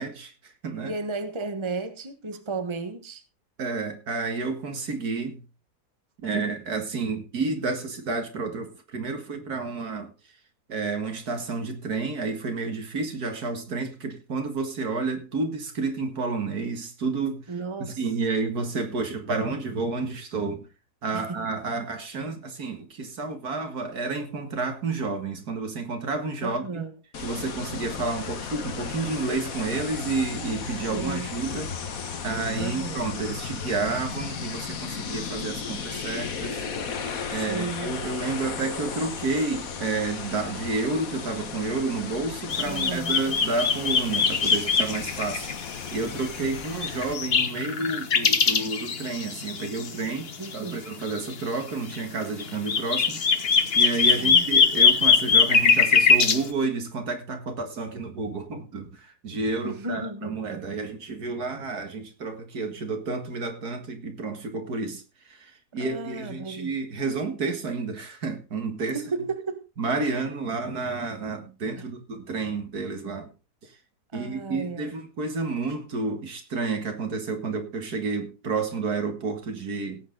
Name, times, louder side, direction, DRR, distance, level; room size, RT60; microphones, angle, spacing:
voice 1, 0.0-0.9 3.6-5.4 6.2-10.1 10.7-17.5 17.8-20.7 21.0-26.8 27.2-31.7 32.2-36.6 37.3-45.5 45.9-69.0 69.8-73.3 73.6-73.7 74.1-80.0, right 3 dB, 70° right, 2.4 m, -30 dB
voice 2, 0.8-3.2 17.5-18.0 21.1-21.5 26.4-26.9 30.9-31.3 32.6-33.0 37.3-38.0 42.6-43.2 50.4-50.8 54.2-54.5 59.6-60.4 65.8-66.8 68.9-69.6 71.8-71.9 74.1-74.9, right 3 dB, 20° right, 1.3 m, -34 dB
sound 1, 27.1-47.1, left 6 dB, 60° left, 1.7 m, -35 dB
sound 2, 42.5-45.9 46.2-46.3 46.8-49.9 50.2-50.5 51.1-51.3 51.9-52.0 52.4-56.5, left 5 dB, 40° left, 1.2 m, -21 dB
17.0 x 8.3 x 4.0 m
omnidirectional pair, 1.7 m